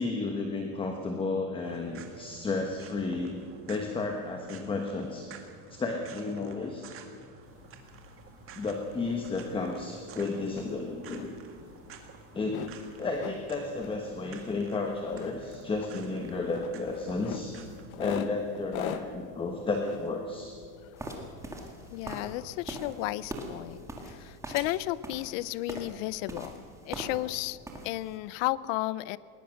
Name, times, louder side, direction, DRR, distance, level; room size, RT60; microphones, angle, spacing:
voice 1, 0.0-3.4 3.7-5.3 5.7-6.9 8.6-11.3 12.3-12.7 13.0-17.6 18.0-20.5, left 3 dB, 10° left, 3 dB, 1.2 m, -32 dB
sound 1, 1.6-17.9, right 6 dB, 30° right, 2.0 m, -51 dB
sound 2, 7.4-23.9, left 10 dB, 80° left, 1.3 m, -45 dB
sound 3, 21.0-27.4 27.6-28.1, right 1 dB, 5° right, 1.9 m, -41 dB
voice 2, 21.9-26.5 26.8-27.6 27.8-29.2, left 17 dB, 65° left, 19 dB, 0.7 m, -33 dB
20.5 x 20.0 x 6.4 m, 2.2 s
cardioid pair, 165°, 42 cm